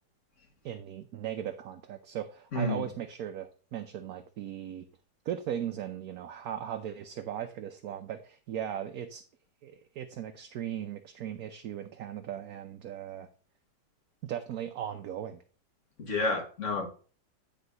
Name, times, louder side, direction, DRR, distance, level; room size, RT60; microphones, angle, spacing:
voice 1, 0.6-4.9 5.2-9.2 9.6-13.3 14.2-15.4, right 10 dB, 65° right, 6 dB, 1.1 m, -38 dB
voice 2, 2.5-2.8 16.0-16.9, left 2 dB, 45° left, 2 dB, 2.1 m, -30 dB
9.7 x 3.9 x 5.4 m, 0.39 s
omnidirectional pair, 1.9 m